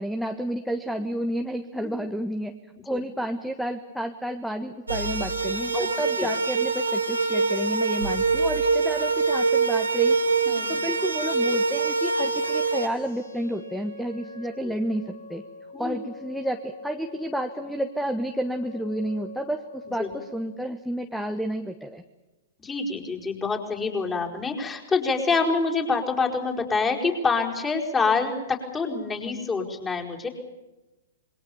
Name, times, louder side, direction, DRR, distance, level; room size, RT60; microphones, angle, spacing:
voice 1, 0.0-2.5 2.8-10.2 10.7-15.4 15.8-22.0, right 1 dB, ahead, 7 dB, 1.4 m, -30 dB
sound 1, 4.9-12.9, right 4 dB, 85° right, 3.0 m, -24 dB
sound 2, 12.4-20.4, left 3 dB, 75° left, 5.5 m, -44 dB
voice 2, 22.6-30.3, left 4 dB, 15° left, 1 dB, 4.9 m, -26 dB
27.5 x 22.5 x 7.1 m, 1.1 s
figure-of-eight pair, 110°, 0 cm